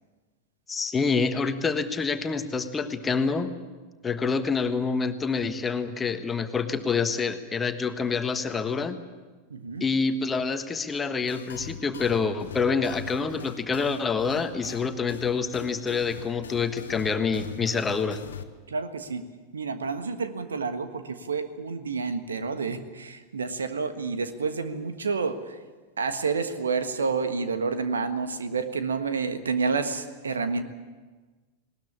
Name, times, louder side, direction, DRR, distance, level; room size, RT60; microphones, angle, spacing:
voice 1, 0.7-3.5 4.0-9.0 9.8-18.2, left 5 dB, 15° left, 9 dB, 1.4 m, -27 dB
voice 2, 9.5-9.8 18.7-19.2 19.5-25.6 26.0-30.6, right 4 dB, 70° right, 10 dB, 1.4 m, -29 dB
sound 1, 11.3-18.4, left 7 dB, 65° left, 1.2 m, -41 dB
19.5 x 19.5 x 8.7 m, 1.3 s
figure-of-eight pair, 90°, 0 cm